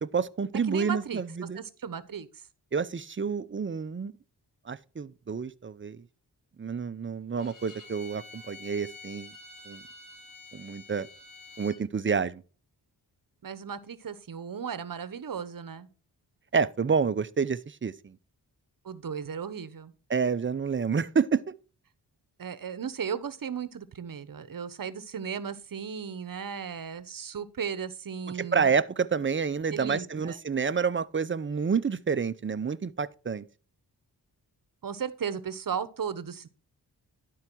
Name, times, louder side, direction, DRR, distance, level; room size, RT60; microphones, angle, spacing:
voice 1, 0.0-1.6 2.7-4.1 4.7-6.0 6.6-9.3 9.7-9.8 10.5-11.1 11.6-12.4 16.5-18.2 20.1-21.5 28.4-33.4, right 5 dB, 30° right, 0.6 m, -29 dB
voice 2, 0.7-1.2 1.5-2.3 13.4-15.9 18.8-19.9 22.4-28.7 29.7-30.4 34.8-36.5, right 7 dB, 50° right, 1.0 m, -36 dB
Bowed string instrument, 7.4-11.8, left 3 dB, 50° left, 2.9 m, -48 dB
11.5 x 4.7 x 4.5 m
cardioid pair, 50°, 42 cm